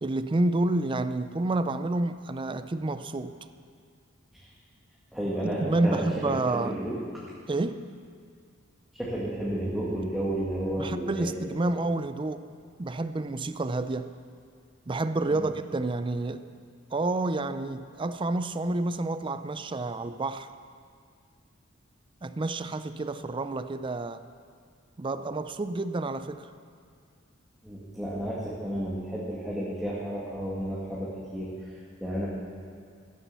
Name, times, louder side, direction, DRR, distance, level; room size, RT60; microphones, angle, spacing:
voice 1, 0.0-3.4 5.6-6.8 7.5-7.9 10.8-12.5 12.8-14.1 14.9-16.5 16.9-20.5 22.2-24.2 25.0-26.5, right 2 dB, 25° right, 12 dB, 0.4 m, -29 dB
voice 2, 5.1-7.0 9.0-11.3 11.6-11.7 15.3-15.5 27.6-32.3, right 1 dB, ahead, -8 dB, 1.9 m, -32 dB
14.0 x 10.5 x 6.9 m, 2.2 s
head